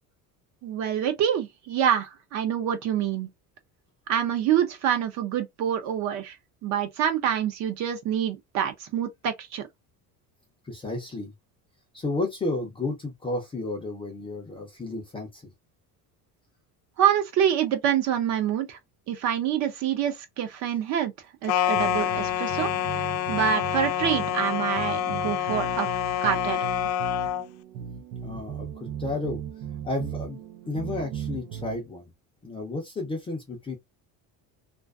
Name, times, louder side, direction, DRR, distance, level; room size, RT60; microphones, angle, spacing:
voice 1, 0.6-3.3 4.1-6.4 6.6-9.7 17.0-18.8 19.1-21.1 21.4-22.7 23.0-25.9 26.2-26.6, right 9 dB, 45° right, 0.6 m, -26 dB
voice 2, 10.6-11.3 11.9-15.4 28.2-28.7 29.0-29.4 29.8-32.1 32.4-33.8, left 2 dB, 15° left, 0.4 m, -32 dB
sound 1, 21.5-27.5, left 10 dB, 90° left, 0.5 m, -27 dB
sound 2, 21.7-31.8, right 9 dB, 90° right, 0.7 m, -37 dB
2.4 x 2.4 x 2.3 m
cardioid pair, 170°, 39 cm